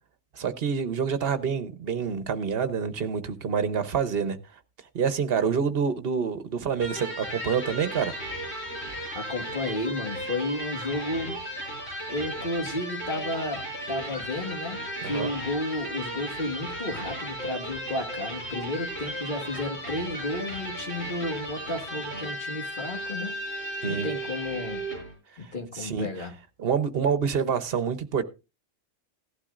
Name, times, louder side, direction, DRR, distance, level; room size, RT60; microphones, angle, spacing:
voice 1, 0.3-4.4 4.9-8.1 15.0-15.3 23.8-24.1 25.4-26.3 26.6-28.2, right 6 dB, 60° right, 1.1 m, -27 dB
Electric guitar, 6.8-25.1, right 1 dB, 75° left, 7.9 m, -35 dB
voice 2, 9.1-11.4 12.1-13.6 13.9-23.3 23.8-24.8 25.4-26.4, left 2 dB, 50° left, 2.0 m, -32 dB
17.0 x 11.5 x 2.5 m
omnidirectional pair, 1.1 m